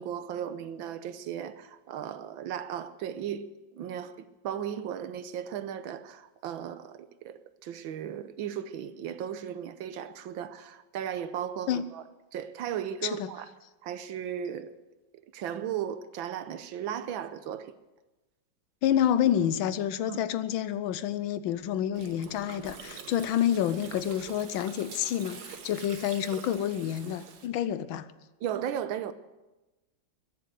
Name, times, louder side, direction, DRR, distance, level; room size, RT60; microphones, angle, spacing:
voice 1, 0.0-3.5 3.7-12.0 12.3-13.5 13.8-14.7 15.3-17.7 20.1-20.2 28.4-29.1, right 9 dB, 80° right, 1.6 m, -36 dB
voice 2, 18.8-28.1, left 10 dB, 85° left, 1.5 m, -28 dB
Gurgling, 21.9-27.5, right 6 dB, 55° right, 1.5 m, -45 dB
21.5 x 7.9 x 7.9 m
omnidirectional pair, 2.2 m